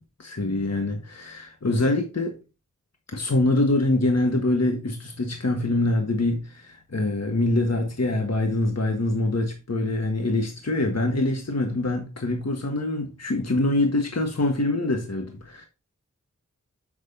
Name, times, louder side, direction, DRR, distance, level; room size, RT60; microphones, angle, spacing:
voice 1, 0.2-2.3 3.1-15.7, left 2 dB, 55° left, 1.5 m, -24 dB
7.9 x 7.5 x 2.8 m
wide cardioid pair, 50°, 32 cm